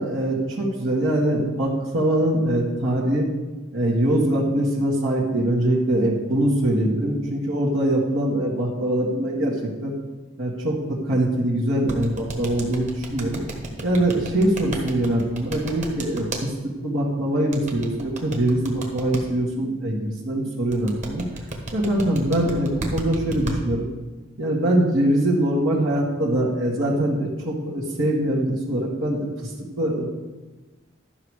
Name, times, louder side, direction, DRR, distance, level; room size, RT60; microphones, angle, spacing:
voice 1, 0.0-3.3 3.7-9.9 10.4-13.4 13.8-16.5 16.8-21.2 21.7-23.9 24.4-30.1, right 1 dB, 85° right, -6 dB, 1.9 m, -23 dB
sound 1, 11.9-16.4 17.5-19.2 20.7-23.6, right 2 dB, 40° right, 1.4 m, -32 dB
12.5 x 5.9 x 4.9 m, 1.2 s
head